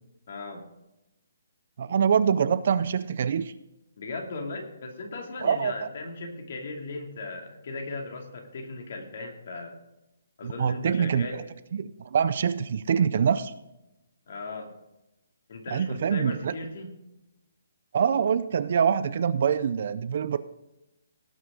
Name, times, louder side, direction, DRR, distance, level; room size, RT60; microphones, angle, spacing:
voice 1, 0.3-0.6 4.0-9.7 10.4-11.4 14.3-14.7 15.5-16.9, left 3 dB, 40° left, 2 dB, 2.5 m, -37 dB
voice 2, 1.8-3.5 5.4-5.9 10.4-11.4 11.7-13.5 15.7-16.6 17.9-20.4, right 7 dB, 35° right, 14 dB, 0.4 m, -25 dB
17.5 x 6.4 x 4.9 m, 0.91 s
hypercardioid pair, 180°, 0 cm